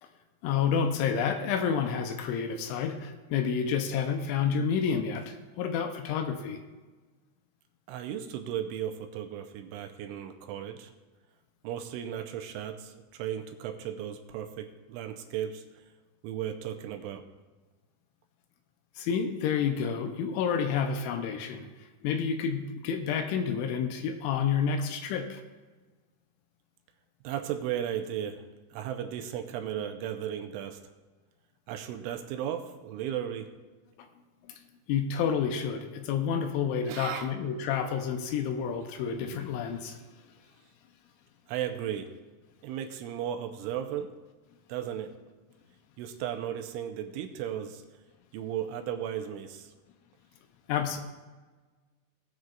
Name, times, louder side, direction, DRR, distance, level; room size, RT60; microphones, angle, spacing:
voice 1, 0.4-6.6 19.0-21.7 22.0-25.4 34.9-40.0 50.7-51.0, left 7 dB, 85° left, 6 dB, 3.0 m, -29 dB
voice 2, 7.9-10.9 11.6-15.6 16.2-17.2 27.2-28.4 28.7-30.8 31.7-33.5 36.9-37.3 41.5-42.1 42.6-44.1 44.7-45.1 46.0-47.8 48.3-49.7, right 10 dB, 85° right, 5 dB, 3.1 m, -35 dB
19.0 x 7.8 x 2.4 m, 1.3 s
omnidirectional pair, 5.6 m